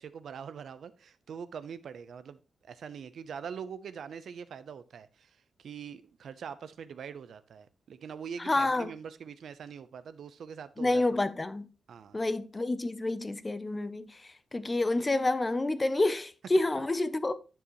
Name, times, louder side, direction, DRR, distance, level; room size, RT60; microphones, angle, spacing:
voice 1, 0.0-11.0 11.9-12.2, right 7 dB, 70° right, 0.7 m, -43 dB
voice 2, 8.4-8.9 10.8-11.7 12.1-17.3, left 2 dB, 20° left, 0.6 m, -29 dB
9.9 x 6.9 x 3.0 m
wide cardioid pair, 145°, 0 cm